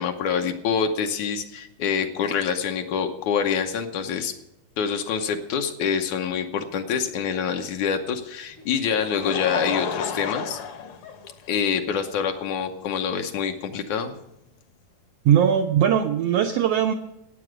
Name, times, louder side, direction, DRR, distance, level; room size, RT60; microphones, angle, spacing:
voice 1, 0.0-4.3 4.8-10.6 11.5-14.1, left 7 dB, 75° left, 5 dB, 2.3 m, -26 dB
Laughter, 8.6-11.8 12.6-12.7 14.2-14.3, left 6 dB, 60° left, 1.7 m, -32 dB
voice 2, 15.2-16.9, right 9 dB, 85° right, 6 dB, 1.4 m, -20 dB
14.5 x 9.0 x 6.1 m, 0.87 s
omnidirectional pair, 3.6 m